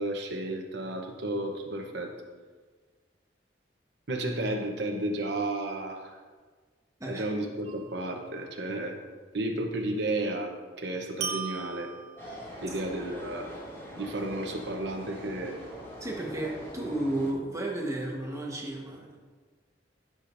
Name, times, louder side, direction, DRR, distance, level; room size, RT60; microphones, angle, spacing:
voice 1, 0.0-2.1 4.1-6.2 7.1-9.0 9.3-11.9 12.6-13.5 13.9-15.6, right 1 dB, 65° right, 2 dB, 0.9 m, -32 dB
sound 1, 7.6-8.3 11.2-12.6, right 6 dB, 40° right, 1.0 m, -38 dB
sound 2, 12.2-17.3, equal, 15° left, 2.4 m, -43 dB
voice 2, 16.0-19.2, right 1 dB, 20° right, -2 dB, 1.3 m, -33 dB
15.0 x 6.4 x 2.6 m, 1.4 s
head